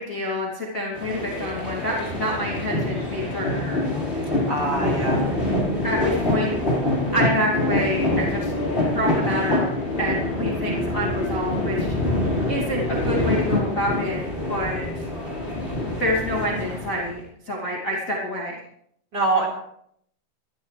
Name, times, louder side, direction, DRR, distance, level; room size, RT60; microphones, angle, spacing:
voice 1, 0.0-3.9 5.8-6.5 7.1-8.5 8.9-9.7 10.0-11.9 12.5-14.2 14.5-15.1 16.0-18.6, left 1 dB, 45° left, -4 dB, 1.0 m, -27 dB
sound 1, 0.9-17.2, left 1 dB, 15° left, 3.7 m, -25 dB
voice 2, 4.5-5.2 19.1-19.5, right 2 dB, 20° right, -2 dB, 4.2 m, -23 dB
21.5 x 14.0 x 3.3 m, 0.70 s
omnidirectional pair, 6.0 m